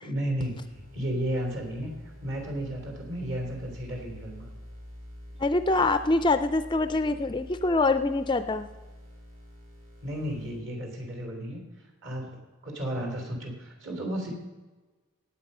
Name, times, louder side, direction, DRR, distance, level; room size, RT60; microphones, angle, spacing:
voice 1, 0.0-4.5 10.0-14.3, equal, 55° right, 2 dB, 3.3 m, -33 dB
sound 1, 0.6-10.6, equal, 85° right, 4.9 m, -47 dB
voice 2, 5.4-8.7, left 2 dB, 20° left, 11 dB, 0.3 m, -24 dB
17.5 x 8.0 x 5.5 m, 1.3 s
head